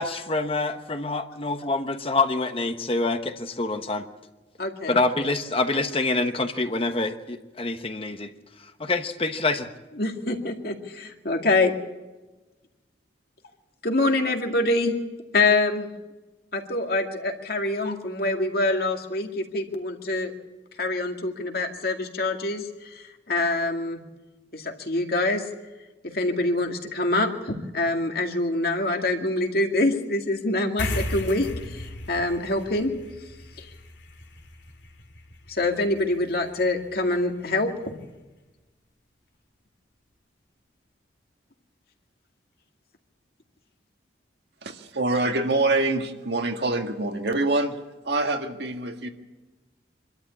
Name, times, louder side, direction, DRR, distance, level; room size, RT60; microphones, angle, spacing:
voice 1, 0.0-4.1 4.9-8.3 8.6-9.7, left 3 dB, 30° left, 7 dB, 1.1 m, -26 dB
voice 2, 4.6-4.9 10.0-11.7 13.8-14.9 15.3-15.9 16.5-20.3 20.8-24.0 24.5-25.4 26.1-32.9 33.6-33.7 35.5-38.0, left 2 dB, 55° left, 3 dB, 2.3 m, -25 dB
sound 1, 30.8-37.6, left 1 dB, 80° left, 2.6 m, -37 dB
voice 3, 44.6-47.8 48.1-49.1, right 2 dB, 70° right, 4 dB, 1.9 m, -25 dB
25.0 x 13.0 x 8.5 m, 1.1 s
head